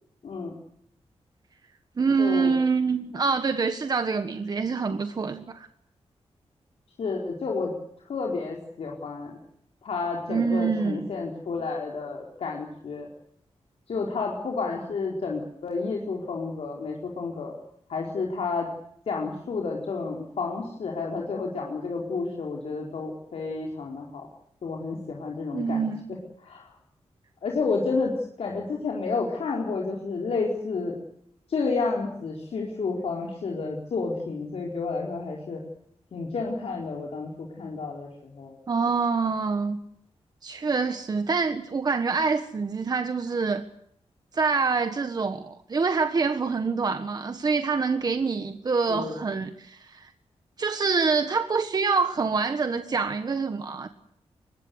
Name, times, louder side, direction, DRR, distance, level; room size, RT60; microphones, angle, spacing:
voice 1, 0.2-0.5 2.2-2.5 7.0-7.7 8.1-9.4 9.8-13.1 13.9-17.5 17.9-18.7 19.1-24.3 24.6-26.7 27.4-31.0 31.5-35.6 36.1-38.6 48.9-49.2, left 4 dB, 65° left, -1 dB, 4.7 m, -30 dB
voice 2, 2.0-5.7 10.3-11.1 25.5-26.2 38.7-39.8 40.4-43.6 44.3-50.1 50.6-53.9, right 4 dB, 40° right, 8 dB, 1.4 m, -26 dB
24.5 x 21.5 x 8.1 m, 0.71 s
wide cardioid pair, 170°, 11 cm